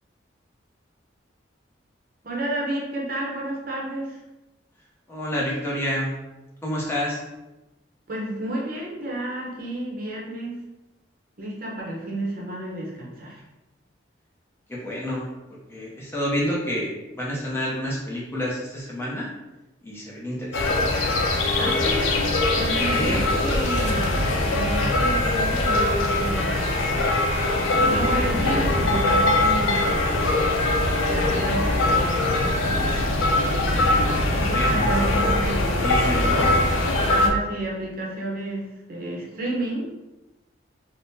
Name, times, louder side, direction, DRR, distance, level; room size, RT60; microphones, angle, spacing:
voice 1, 2.2-4.2 8.1-10.6 11.4-13.4 21.6-22.1 22.5-24.1 24.5-26.7 27.8-29.8 31.1-32.2 34.3-35.9 37.1-39.9, right 1 dB, 45° right, -3 dB, 0.6 m, -30 dB
voice 2, 5.1-6.1 6.6-7.2 14.7-15.3 15.7-19.3 19.8-21.0 22.9-23.2 34.5-34.7 35.2-36.6, equal, 15° left, -5 dB, 0.5 m, -29 dB
sound 1, 20.5-37.3, left 2 dB, 90° left, 0.5 m, -22 dB
3.5 x 2.1 x 2.6 m, 1.0 s
head